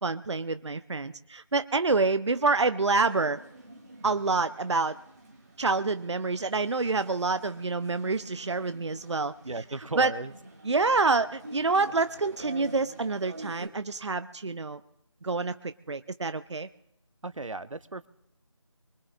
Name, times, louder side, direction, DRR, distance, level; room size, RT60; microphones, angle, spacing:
voice 1, 0.0-3.4 4.0-5.0 5.6-9.3 10.0-10.1 10.6-14.8 15.2-16.7, right 3 dB, 65° right, 12 dB, 0.6 m, -27 dB
sound 1, 3.1-13.7, right 2 dB, 30° right, 2.1 m, -48 dB
voice 2, 9.4-10.3 17.2-18.1, right 3 dB, 90° right, 14 dB, 0.8 m, -35 dB
23.5 x 22.5 x 2.5 m, 0.80 s
figure-of-eight pair, 170°, 16 cm